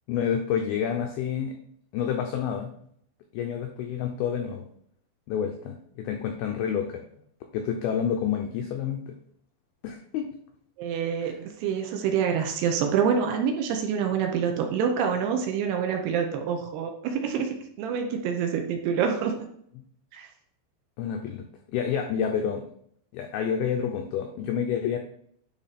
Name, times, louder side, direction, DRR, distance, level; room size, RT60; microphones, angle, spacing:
voice 1, 0.1-1.6 1.9-2.7 3.3-4.6 5.3-7.0 7.5-9.1 9.8-10.3 11.2-11.4 21.0-21.5 21.7-22.6 23.1-25.0, left 8 dB, 85° left, 3 dB, 2.2 m, -29 dB
voice 2, 10.8-19.5 20.1-20.3, right 7 dB, 75° right, 3 dB, 2.6 m, -27 dB
10.5 x 3.7 x 4.1 m, 0.67 s
omnidirectional pair, 5.2 m